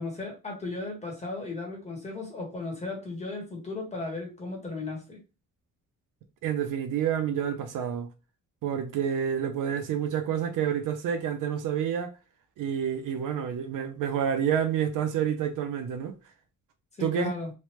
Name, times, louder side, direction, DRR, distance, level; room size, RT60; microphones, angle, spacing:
voice 1, 0.0-5.2 17.0-17.5, left 3 dB, 20° left, 1.0 m, -35 dB
voice 2, 6.4-8.1 8.6-12.1 12.6-16.1 17.0-17.3, right 8 dB, 70° right, 0.5 m, -28 dB
3.2 x 2.1 x 2.9 m
cardioid pair, 160°, 34 cm